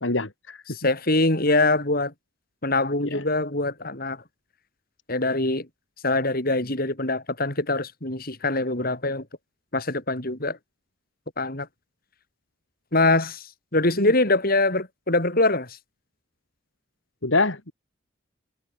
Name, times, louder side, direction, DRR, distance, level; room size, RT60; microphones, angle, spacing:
voice 1, 0.0-0.6 3.1-3.2 14.0-14.1 17.2-17.7, left 3 dB, 75° left, 2.9 m, -25 dB
voice 2, 0.7-2.1 2.6-4.2 5.1-5.7 6.0-9.2 9.7-10.6 11.4-11.7 12.9-13.5 13.7-15.8, left 2 dB, 50° left, 4.9 m, -23 dB
head